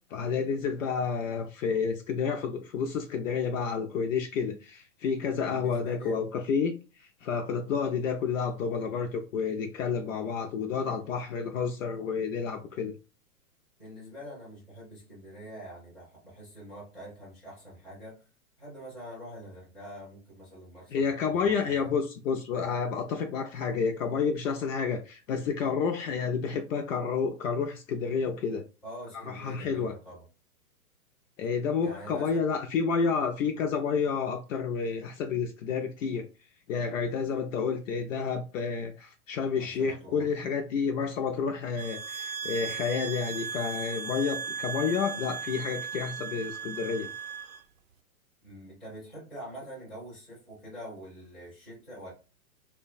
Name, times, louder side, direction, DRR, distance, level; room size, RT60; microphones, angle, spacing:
voice 1, 0.1-12.9 20.9-28.6 29.1-29.9 31.4-36.3 36.7-47.1, left 5 dB, 60° left, 0.5 m, -30 dB
voice 2, 5.4-6.2 13.8-18.3 18.6-21.9 28.8-30.3 31.8-32.4 39.6-40.3 48.4-52.1, equal, 5° left, 0.4 m, -45 dB
sound 1, 41.8-47.6, right 7 dB, 65° right, 0.5 m, -37 dB
2.4 x 2.2 x 2.4 m
hypercardioid pair, 135°, 46 cm